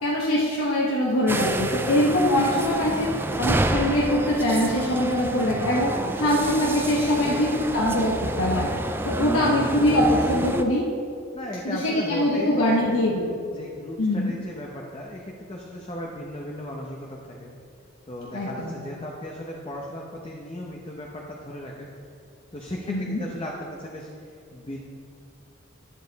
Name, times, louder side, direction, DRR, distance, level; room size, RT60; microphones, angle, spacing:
voice 1, 0.0-3.1 3.4-5.9 6.2-8.7 9.0-10.8 11.6-13.4 14.0-14.3 18.3-18.8 22.9-23.2, left 1 dB, 85° left, -4 dB, 1.2 m, -23 dB
sound 1, 1.3-10.6, right 1 dB, 10° right, 0.3 m, -28 dB
voice 2, 7.1-7.7 11.3-13.0 13.5-17.5 18.0-21.9 22.5-24.8, equal, 25° left, -2 dB, 0.8 m, -36 dB
10.5 x 7.5 x 4.1 m, 2.4 s
head